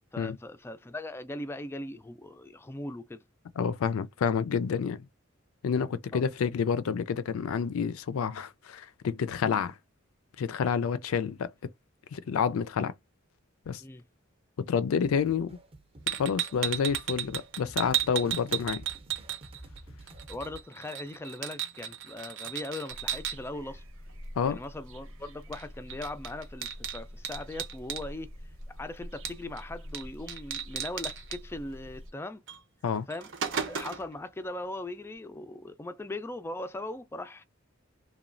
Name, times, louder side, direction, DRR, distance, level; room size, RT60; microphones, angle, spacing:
voice 1, 0.1-3.2 6.1-6.2 13.8-14.0 20.3-23.8 24.5-28.3 28.8-32.4 33.1-33.3 33.6-37.4, left 2 dB, 10° left, 0.3 m, -39 dB
voice 2, 3.6-5.1 5.6-9.8 10.4-11.5 12.1-12.9 13.7-13.8 14.6-15.6 16.2-18.9 24.4-24.6 32.8-33.1, left 6 dB, 85° left, 0.4 m, -29 dB
sound 1, 15.0-20.6, right 1 dB, 30° right, 0.6 m, -50 dB
sound 2, 16.1-19.8 20.1-23.4 25.5-25.6 25.9-28.1 29.3-29.6 29.9-30.0 30.3-31.4 32.5-32.6 33.0-34.1, right 9 dB, 65° right, 0.7 m, -34 dB
sound 3, 22.9-32.1, equal, 90° right, 1.1 m, -46 dB
3.0 x 2.2 x 2.5 m
head